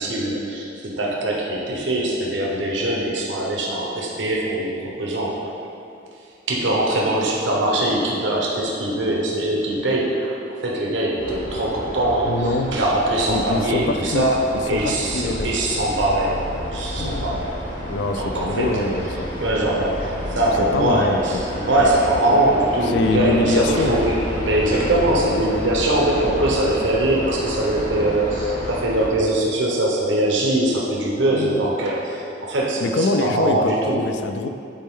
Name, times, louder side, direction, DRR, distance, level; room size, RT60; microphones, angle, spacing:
voice 1, 0.0-5.4 6.5-10.4 10.6-16.4 16.7-17.5 18.2-18.9 19.4-34.0, right 1 dB, 85° right, -3 dB, 1.0 m, -22 dB
sound 1, 11.2-29.1, equal, 45° left, 1.3 m, -31 dB
voice 2, 12.3-12.7 13.3-14.2 14.7-15.5 17.0-17.4 17.9-19.3 20.7-21.4 22.9-23.9 31.3-31.7 32.8-34.5, left 2 dB, 70° left, 7 dB, 0.4 m, -24 dB
8.7 x 4.2 x 3.7 m, 2.7 s
head